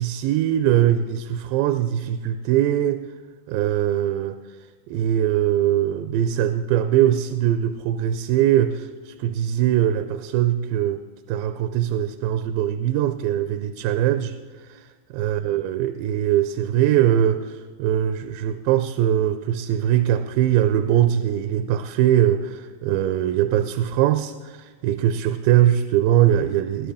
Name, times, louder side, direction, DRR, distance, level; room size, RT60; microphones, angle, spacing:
voice 1, 0.0-3.0 3.5-4.4 4.9-11.0 11.3-14.4 14.6-14.9 15.1-26.9, right 11 dB, 85° right, 9 dB, 2.3 m, -21 dB
20.5 x 11.0 x 3.5 m, 1.5 s
omnidirectional pair, 4.2 m